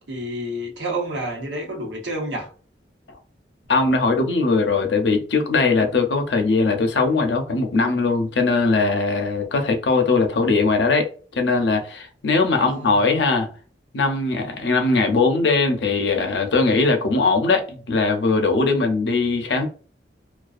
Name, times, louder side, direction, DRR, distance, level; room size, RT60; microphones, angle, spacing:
voice 1, 0.1-2.5 12.5-13.1, right 1 dB, 90° right, 0.9 m, -29 dB
voice 2, 3.7-13.5 13.9-19.7, left 3 dB, 80° left, 0.5 m, -20 dB
2.4 x 2.3 x 2.3 m
head